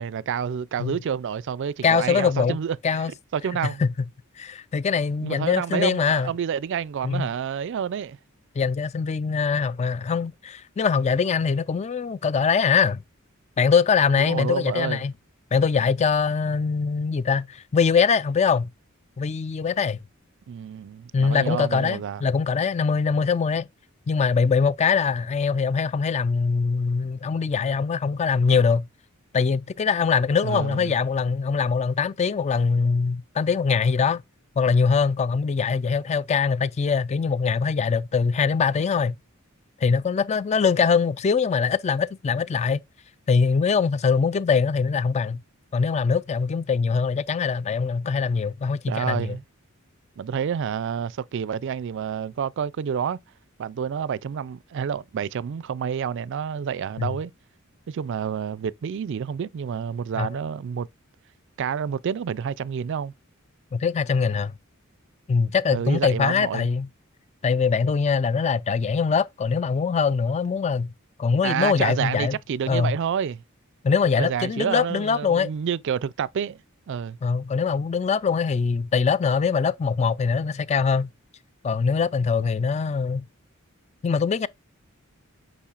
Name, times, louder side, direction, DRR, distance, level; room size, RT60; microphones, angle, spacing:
voice 1, 0.0-3.0 3.3-3.8 5.2-8.2 14.2-15.0 20.5-22.2 30.4-30.9 48.9-49.4 50.2-53.2 53.6-57.3 57.9-60.9 61.6-63.1 65.7-66.7 71.4-73.4 74.2-76.6 76.9-77.2, right 7 dB, 60° right, 0.3 m, -29 dB
voice 2, 1.8-2.6 2.8-3.1 3.8-3.9 4.4-6.3 7.0-7.3 8.6-13.0 13.6-15.1 15.5-18.7 19.2-20.0 21.1-23.7 24.1-28.9 29.3-34.2 34.6-39.2 39.8-42.8 43.3-45.4 45.7-49.4 57.0-57.2 60.1-60.3 63.7-64.5 65.3-66.9 67.4-70.9 71.2-72.4 72.7-73.0 73.8-75.5 77.2-81.1 81.6-83.2 84.0-84.5, left 5 dB, 30° left, 0.3 m, -22 dB
8.5 x 5.3 x 2.4 m
head